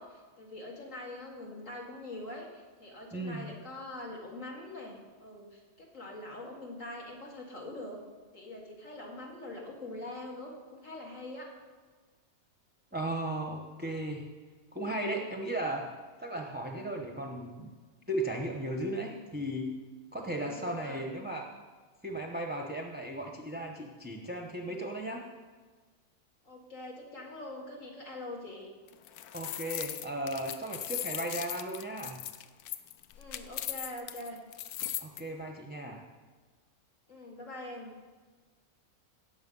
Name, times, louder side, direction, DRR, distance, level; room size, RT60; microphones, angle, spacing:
voice 1, 0.0-8.0 8.3-11.5 20.2-21.1 26.4-28.7 33.1-34.4 37.1-37.9, left 1 dB, 60° left, -2 dB, 2.5 m, -43 dB
voice 2, 3.1-3.5 12.9-14.3 14.7-15.9 16.2-17.7 18.1-19.7 20.1-21.5 22.0-25.2 29.3-32.2 35.0-36.0, right 1 dB, 10° right, 1 dB, 0.7 m, -36 dB
sound 1, 28.9-35.2, left 12 dB, 90° left, 1.1 m, -38 dB
17.0 x 7.2 x 5.4 m, 1.4 s
omnidirectional pair, 1.5 m